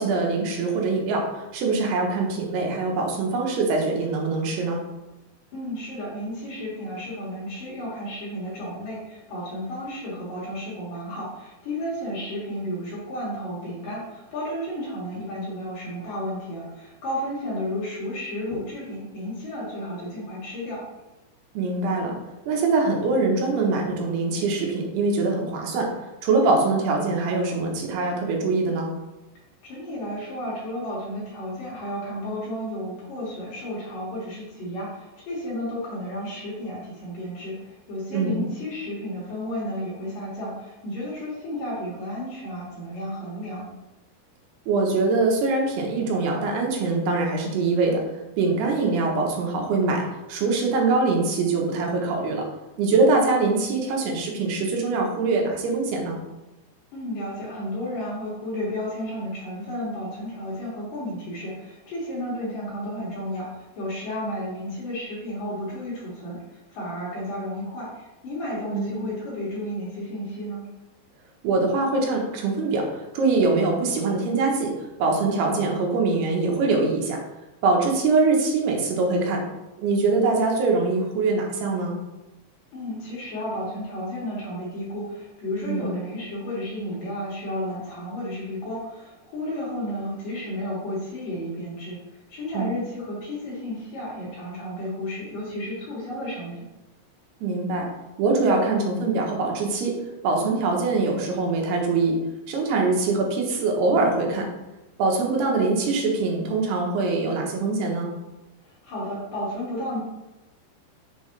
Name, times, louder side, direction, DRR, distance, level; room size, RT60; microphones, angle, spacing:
voice 1, 0.0-4.8 21.5-22.2 22.5-28.9 38.1-38.5 44.7-48.0 48.4-52.4 52.8-56.2 68.7-69.1 71.4-77.2 77.6-79.4 79.8-81.9 85.6-85.9 92.5-92.7 97.4-97.9 98.2-99.9 100.2-102.2 102.5-104.5 105.0-108.1, right 3 dB, 70° right, 0 dB, 2.9 m, -23 dB
voice 2, 5.5-20.8 29.6-43.7 56.9-66.4 66.7-70.6 82.7-92.0 92.3-96.6 108.6-110.0, left 1 dB, 55° left, -6 dB, 3.2 m, -32 dB
7.1 x 6.1 x 3.2 m, 1.0 s
omnidirectional pair, 5.2 m